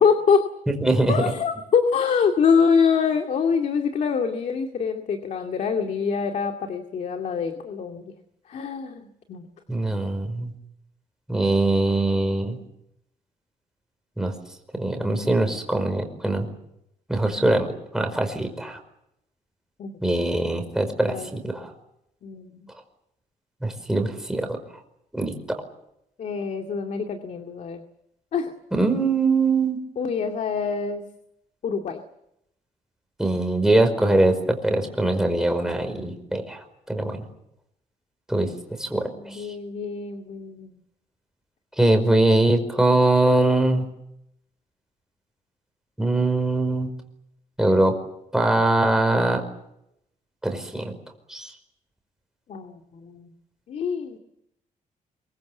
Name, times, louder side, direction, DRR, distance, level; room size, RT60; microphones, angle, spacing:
voice 1, 0.0-0.4 1.1-8.0 8.5-9.5 19.8-19.9 21.1-21.3 22.2-22.6 26.2-27.8 28.3-28.5 30.0-31.0 31.6-32.0 39.0-40.8 52.5-53.3 53.7-54.2, left 6 dB, 60° left, 4 dB, 2.2 m, -24 dB
voice 2, 0.8-1.1 9.7-10.5 11.3-12.6 14.2-14.3 14.7-16.5 17.1-17.7 17.9-18.8 20.0-21.7 23.6-24.6 25.1-25.6 28.7-29.8 33.2-37.2 38.3-38.5 38.8-39.5 41.8-43.8 46.0-46.9 47.6-47.9 48.3-49.4 50.4-50.9 51.3-51.5, right 2 dB, 5° right, 5 dB, 5.1 m, -22 dB
26.0 x 23.5 x 7.3 m, 0.79 s
cardioid pair, 145°, 14 cm